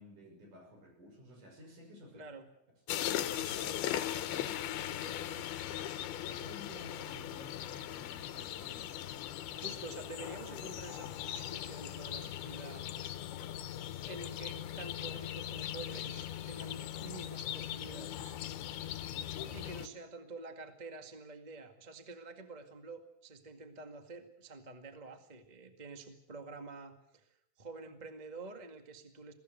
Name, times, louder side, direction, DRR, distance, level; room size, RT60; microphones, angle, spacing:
voice 1, 0.0-2.3 2.7-2.8 3.1-5.6 6.3-9.2, equal, 55° right, 3 dB, 7.3 m, -54 dB
voice 2, 2.1-2.4 3.7-3.8 9.5-12.8 13.5-18.3 19.4-29.3, right 3 dB, 25° right, 6 dB, 0.9 m, -48 dB
sound 1, 2.9-19.9, left 11 dB, 85° left, 3.0 m, -39 dB
22.5 x 17.0 x 9.3 m, 0.79 s
omnidirectional pair, 4.4 m